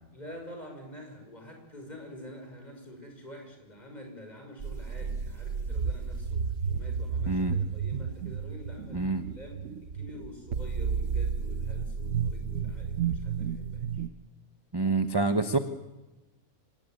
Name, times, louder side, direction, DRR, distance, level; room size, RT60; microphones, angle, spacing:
voice 1, 0.1-14.0, left 1 dB, 25° left, 4 dB, 6.1 m, -47 dB
sound 1, 4.6-14.1, right 6 dB, 60° right, 1.3 m, -32 dB
voice 2, 7.3-7.6 8.9-9.2 14.7-15.6, right 3 dB, 20° right, 9 dB, 1.0 m, -26 dB
25.5 x 18.5 x 9.3 m, 1.1 s
omnidirectional pair, 1.6 m